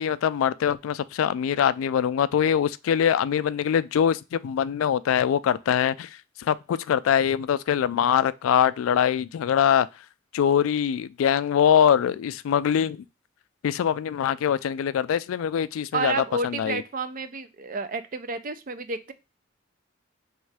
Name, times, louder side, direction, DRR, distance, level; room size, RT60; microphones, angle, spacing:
voice 1, 0.0-6.1 6.4-9.9 10.3-13.0 13.6-16.1 16.4-16.8, left 8 dB, 85° left, 0.3 m, -23 dB
voice 2, 15.9-19.1, right 4 dB, 45° right, 0.4 m, -30 dB
3.6 x 3.1 x 3.3 m
head